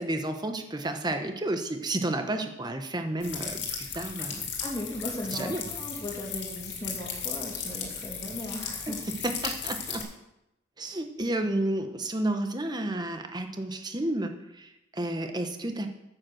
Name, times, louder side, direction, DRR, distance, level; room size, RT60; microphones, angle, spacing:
voice 1, 0.0-4.5 5.3-5.6 8.9-9.0 9.2-10.1 10.8-15.9, right 1 dB, 25° right, 6 dB, 1.1 m, -31 dB
sound 1, 3.2-10.0, left 6 dB, 75° left, 2.3 m, -36 dB
voice 2, 4.6-9.0, left 1 dB, 20° left, -2 dB, 2.8 m, -37 dB
9.3 x 7.8 x 6.3 m, 0.88 s
head